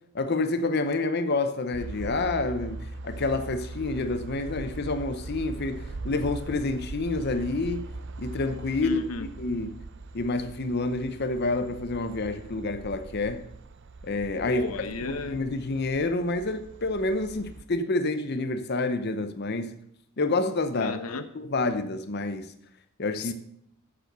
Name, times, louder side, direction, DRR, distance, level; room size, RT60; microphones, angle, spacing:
voice 1, 0.1-7.9 8.2-9.0 9.4-9.7 10.1-13.4 14.0-14.6 15.1-19.7 20.2-21.0 21.3-22.5 23.0-23.3, left 2 dB, 50° left, 0.7 m, -28 dB
sound 1, 1.7-17.6, right 2 dB, 55° right, 0.6 m, -41 dB
voice 2, 8.8-9.3 14.4-15.4 20.8-21.3 23.1-23.3, left 4 dB, 90° left, 0.9 m, -33 dB
9.0 x 7.6 x 6.7 m
head